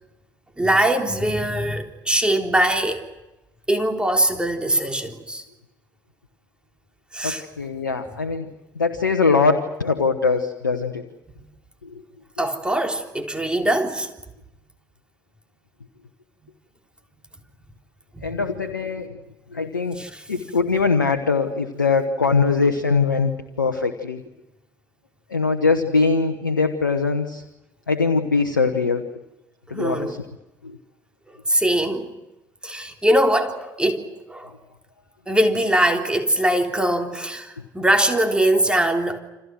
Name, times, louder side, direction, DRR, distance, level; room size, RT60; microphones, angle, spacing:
voice 1, 0.6-3.0 3.7-5.4 7.1-7.4 12.4-14.1 20.0-20.2 29.7-30.2 31.5-32.1 32.6-34.5 35.3-39.2, right 1 dB, 10° right, 3.5 m, -22 dB
voice 2, 7.2-11.0 11.8-12.0 18.2-19.2 19.5-20.0 20.3-24.2 25.3-27.4 27.9-29.0 29.7-30.2 30.6-30.8, left 4 dB, 85° left, 1.1 m, -22 dB
29.0 x 27.0 x 6.3 m
figure-of-eight pair, 55°, 10 cm